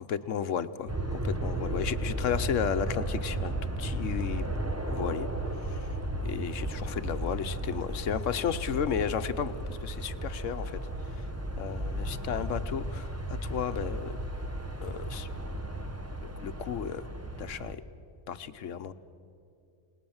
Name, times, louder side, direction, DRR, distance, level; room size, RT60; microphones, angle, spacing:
voice 1, 0.0-3.5 3.8-4.5 4.9-5.3 5.7-5.9 6.2-10.8 11.6-14.2 14.8-15.3 16.4-17.0 17.4-17.8 18.3-18.9, left 8 dB, 85° left, 12 dB, 1.2 m, -33 dB
sound 1, 0.9-17.7, right 1 dB, 15° right, 0.9 m, -34 dB
28.5 x 19.5 x 7.2 m, 2.7 s
omnidirectional pair, 1.3 m